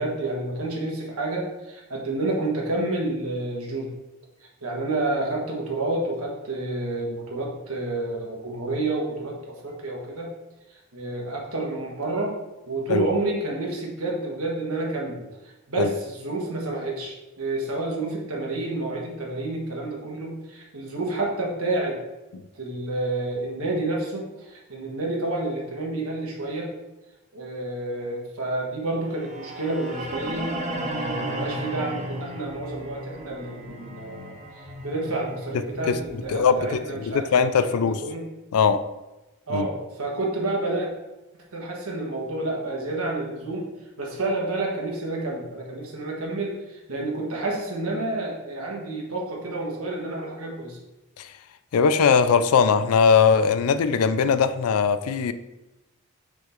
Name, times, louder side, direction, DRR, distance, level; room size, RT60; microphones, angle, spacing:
voice 1, 0.0-3.9 4.6-10.3 10.7-12.3 12.7-22.0 22.5-26.7 27.3-38.2 39.5-40.9 41.5-43.6 44.0-50.8, right 2 dB, 70° right, -2 dB, 1.5 m, -29 dB
sound 1, 29.1-37.2, right 1 dB, 30° right, 0.9 m, -34 dB
voice 2, 35.9-38.0 38.5-38.8 39.5-39.7 51.2-51.3 51.7-55.3, left 6 dB, 75° left, 12 dB, 0.4 m, -20 dB
6.1 x 3.8 x 4.4 m, 1.0 s
head